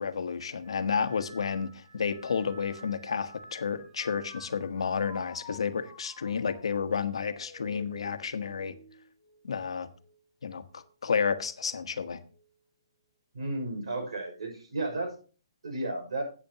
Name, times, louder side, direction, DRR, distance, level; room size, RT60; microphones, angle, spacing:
voice 1, 0.0-8.7 9.4-9.9 10.4-12.2, left 6 dB, 90° left, 1.2 m, -31 dB
sound 1, 0.6-10.2 10.7-11.3 12.2-12.6, left 1 dB, 5° left, 4.0 m, -52 dB
voice 2, 13.3-15.1 15.6-16.2, right 2 dB, 85° right, 5.8 m, -33 dB
14.5 x 8.5 x 2.9 m
hypercardioid pair, 175°, 3 cm